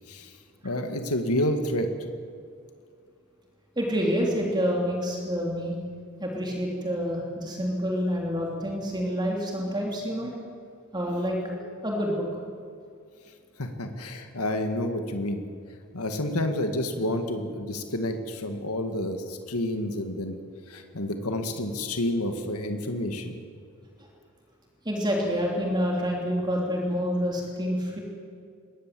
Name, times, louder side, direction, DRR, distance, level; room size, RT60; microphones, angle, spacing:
voice 1, 0.6-1.9 13.6-15.4 15.9-20.4 20.7-23.4, left 1 dB, 85° left, 6 dB, 2.0 m, -29 dB
voice 2, 3.8-5.7 6.2-10.3 10.9-11.4 11.8-12.3 24.8-28.0, equal, 20° right, -1 dB, 3.2 m, -27 dB
22.5 x 18.0 x 7.8 m, 2.3 s
head